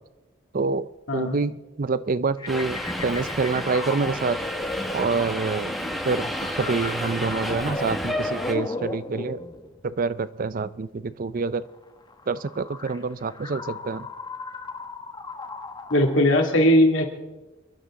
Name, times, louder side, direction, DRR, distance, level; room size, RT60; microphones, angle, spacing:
voice 1, 0.5-4.4 4.9-5.7 6.0-9.4 9.8-11.7 12.3-14.1, right 4 dB, 45° right, 16 dB, 0.5 m, -27 dB
voice 2, 1.1-1.4 15.9-17.1, left 1 dB, 80° left, 3 dB, 2.3 m, -19 dB
sound 1, 2.4-9.9 11.3-16.2, left 2 dB, 20° left, 1.1 m, -36 dB
Subway metro underground, 2.5-8.5, equal, ahead, 1.3 m, -31 dB
28.5 x 11.0 x 3.7 m, 1.1 s
head